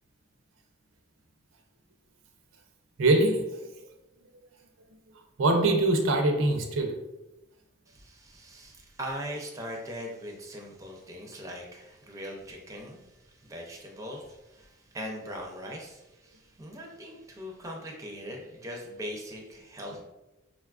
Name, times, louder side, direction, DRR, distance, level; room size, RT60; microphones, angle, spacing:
voice 1, 3.0-3.4 5.4-7.0, right 2 dB, 85° right, 4 dB, 0.5 m, -23 dB
voice 2, 7.9-20.0, equal, 15° right, 0 dB, 0.4 m, -40 dB
3.9 x 2.3 x 2.3 m, 0.98 s
head